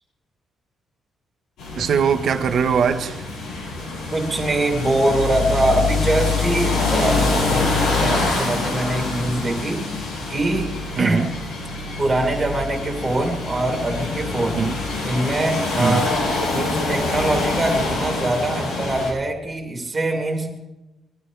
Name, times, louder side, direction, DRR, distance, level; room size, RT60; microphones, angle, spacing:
sound 1, 1.6-19.1, left 3 dB, 90° left, 7.0 m, -25 dB
voice 1, 1.8-3.2 11.0-11.3 14.5-14.8 15.8-16.1, right 6 dB, 50° right, 8 dB, 1.3 m, -21 dB
voice 2, 4.1-9.9 10.3-11.2 12.0-14.7 15.0-16.1 16.5-20.7, right 2 dB, 20° right, 2 dB, 2.9 m, -23 dB
23.5 x 15.0 x 3.4 m, 0.97 s
cardioid pair, 170°, 0 cm